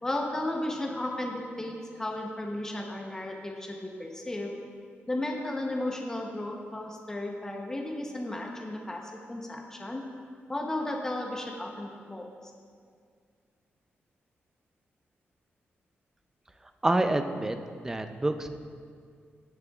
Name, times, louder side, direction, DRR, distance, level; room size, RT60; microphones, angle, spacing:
voice 1, 0.0-4.5 5.1-9.0 9.3-10.0 10.5-12.3, left 1 dB, 15° left, 0 dB, 0.8 m, -34 dB
voice 2, 16.8-18.5, right 2 dB, 10° right, 8 dB, 0.4 m, -27 dB
19.5 x 6.7 x 2.3 m, 2.1 s
wide cardioid pair, 165°, 4 cm